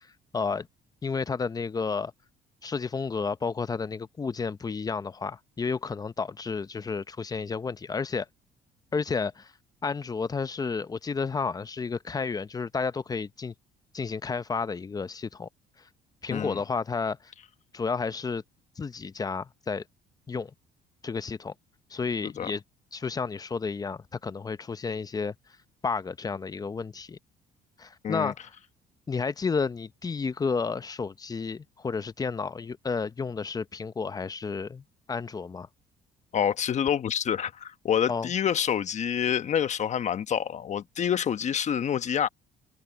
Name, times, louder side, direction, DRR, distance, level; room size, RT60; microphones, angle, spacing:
voice 1, 0.3-0.7 1.0-2.1 2.6-8.3 8.9-9.5 9.8-13.5 13.9-15.5 16.2-17.3 17.7-18.4 18.8-19.8 20.3-20.5 21.0-21.5 21.9-22.6 22.9-25.3 25.8-27.2 27.8-28.4 29.1-35.7 38.1-38.3, left 5 dB, 20° left, 0.6 m, -31 dB
voice 2, 36.3-42.3, left 8 dB, 45° left, 1.1 m, -27 dB
cardioid pair, 110°, 17 cm